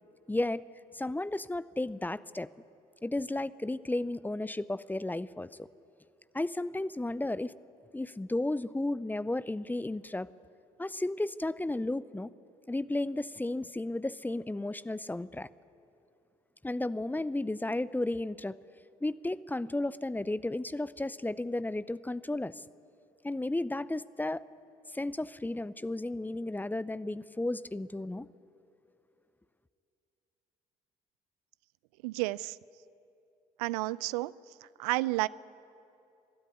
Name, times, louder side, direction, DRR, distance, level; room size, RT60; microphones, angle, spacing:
voice 1, 0.3-0.6 0.9-2.5 3.0-5.7 6.3-7.5 7.9-10.3 10.8-12.3 12.7-15.5 16.6-18.6 19.0-22.6 23.2-24.4 24.9-28.3, left 2 dB, 10° left, 18 dB, 0.6 m, -33 dB
voice 2, 32.0-32.6 33.6-34.3 34.8-35.3, right 20 dB, 75° right, 21 dB, 0.4 m, -31 dB
22.0 x 12.5 x 9.6 m, 2.8 s
figure-of-eight pair, 50°, 20 cm